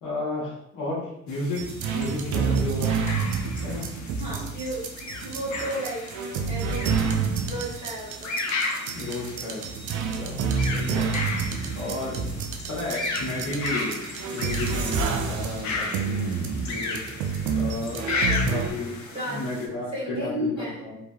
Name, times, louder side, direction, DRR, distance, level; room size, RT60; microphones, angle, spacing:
voice 1, 0.0-2.9 3.6-3.9 8.9-9.7 10.1-10.4 10.7-11.4 11.7-12.2 12.7-14.0 14.3-16.4 16.7-17.1 17.5-18.1 18.5-19.0 19.3-21.0, left 2 dB, 90° left, -6 dB, 1.1 m, -33 dB
sound 1, 1.3-19.7, left 3 dB, 70° left, 0.6 m, -35 dB
sound 2, 1.6-18.7, right 5 dB, 75° right, 0.5 m, -29 dB
voice 2, 4.2-6.1 6.5-8.4 18.1-18.6 19.1-20.8, equal, 15° right, -10 dB, 1.3 m, -34 dB
3.0 x 2.5 x 2.3 m, 0.77 s
cardioid pair, 90°, 30 cm